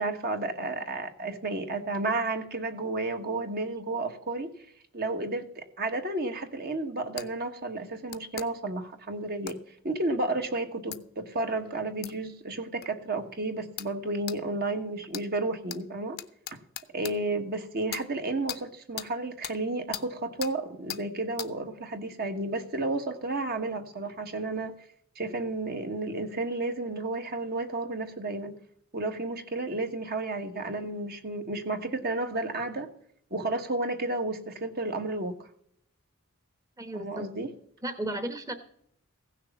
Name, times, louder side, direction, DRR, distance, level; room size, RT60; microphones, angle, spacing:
voice 1, 0.0-4.5 4.9-9.6 9.8-16.2 16.9-24.7 25.1-28.6 28.9-32.9 33.3-35.4 36.9-37.5, right 2 dB, 45° right, 1.3 m, -32 dB
sound 1, 7.2-7.3 8.1-8.5 9.5-9.6 10.9-11.0 12.0-12.2 12.8-12.9 13.8-13.9 14.3-14.4 15.1-15.3 15.7-15.8 16.2-17.2 17.9-18.1 18.5-18.6 19.0-19.1 19.4-19.6 19.9-20.1 20.4-20.5 20.9-21.0 21.4-21.5, left 11 dB, 50° left, 0.7 m, -38 dB
voice 2, 36.8-37.3 37.8-38.5, right 1 dB, 15° right, 1.0 m, -34 dB
16.0 x 6.6 x 7.0 m
head